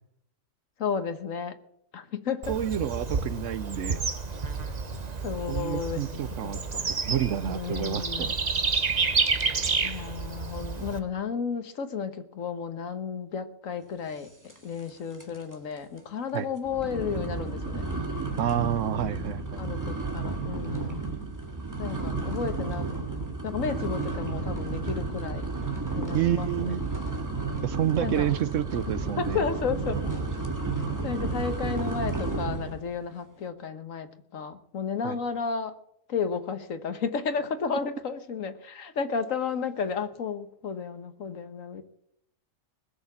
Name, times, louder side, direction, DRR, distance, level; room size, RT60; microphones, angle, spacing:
voice 1, 0.8-1.6 1.9-2.5 5.2-6.9 7.5-8.4 9.8-14.3 14.6-17.9 19.0-21.1 21.8-22.9 23.4-25.5 26.0-26.7 28.0-28.3 29.2-30.0 31.0-35.8 36.1-41.8, left 6 dB, 75° left, 9 dB, 1.6 m, -33 dB
Bird / Insect, 2.4-11.0, right 4 dB, 35° right, 1.1 m, -30 dB
voice 2, 2.5-4.0 5.5-6.6 7.1-8.3 16.3-16.5 18.4-19.4 26.1-26.8 27.6-29.4 35.0-35.2, right 10 dB, 70° right, 15 dB, 1.1 m, -29 dB
sound 1, 14.5-14.9 15.1-15.5 16.0-16.1 16.6-32.8, right 3 dB, 15° right, 1.9 m, -32 dB
20.5 x 6.9 x 7.2 m, 0.73 s
omnidirectional pair, 1.4 m